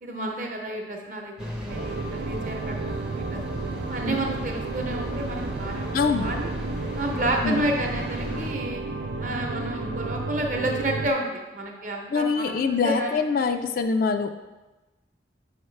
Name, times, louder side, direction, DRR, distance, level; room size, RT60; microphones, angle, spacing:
voice 1, 0.0-3.4 3.9-5.9 6.2-6.5 6.9-8.8 9.2-12.6 12.8-13.2, right 1 dB, 45° right, 1 dB, 0.8 m, -30 dB
sound 1, 1.4-8.5, equal, 5° right, 0.5 m, -37 dB
sound 2, 1.7-11.1, right 3 dB, 70° right, 0.5 m, -32 dB
voice 2, 5.9-6.3 7.4-7.7 12.1-14.3, left 4 dB, 50° left, 7 dB, 0.3 m, -24 dB
5.7 x 5.3 x 3.2 m, 1.1 s
head